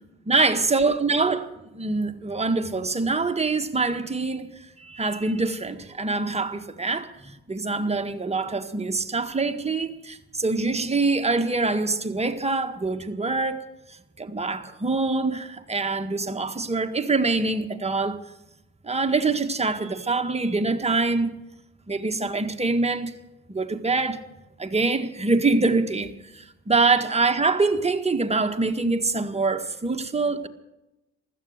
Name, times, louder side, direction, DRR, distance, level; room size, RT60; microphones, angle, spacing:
voice 1, 0.3-7.1 7.5-13.6 14.2-18.2 18.8-21.3 21.9-23.1 23.5-24.2 24.6-30.5, right 3 dB, 20° right, 1.7 m, -24 dB
16.0 x 13.0 x 6.6 m
hypercardioid pair, 55°, 32 cm